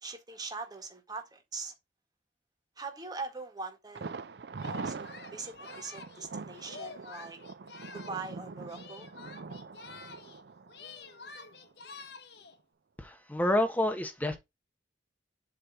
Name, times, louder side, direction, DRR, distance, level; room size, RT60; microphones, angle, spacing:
voice 1, 0.0-1.7 2.8-4.1 4.6-7.4 7.9-9.1, right 4 dB, 20° right, 1.7 m, -42 dB
Thunder, 3.9-11.7 12.0-12.1 12.5-12.6, right 4 dB, 65° right, 0.5 m, -43 dB
Singing, 4.6-8.4 8.7-10.4 10.7-12.6, left 4 dB, 65° left, 1.0 m, -48 dB
voice 2, 13.0-14.4, left 1 dB, 10° left, 1.3 m, -28 dB
7.7 x 3.3 x 5.6 m
head